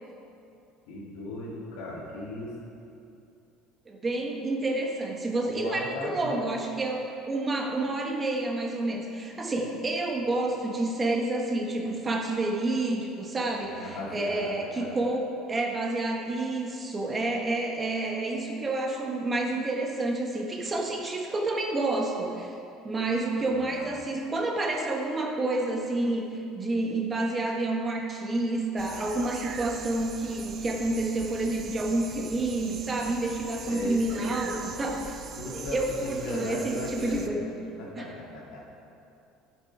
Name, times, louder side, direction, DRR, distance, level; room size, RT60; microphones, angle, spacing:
voice 1, 0.9-2.5 5.4-6.4 13.5-15.0 23.3-23.8 33.7-34.7 35.4-37.5 37.8-38.6, left 2 dB, 85° left, -5 dB, 2.7 m, -37 dB
voice 2, 3.9-22.6 22.8-35.2 35.5-37.4 38.0-38.1, right 2 dB, 25° right, 1 dB, 1.4 m, -29 dB
sound 1, 28.8-37.3, right 6 dB, 45° right, 0.7 m, -41 dB
11.0 x 7.6 x 4.7 m, 2.7 s
supercardioid pair, 105°, 0 cm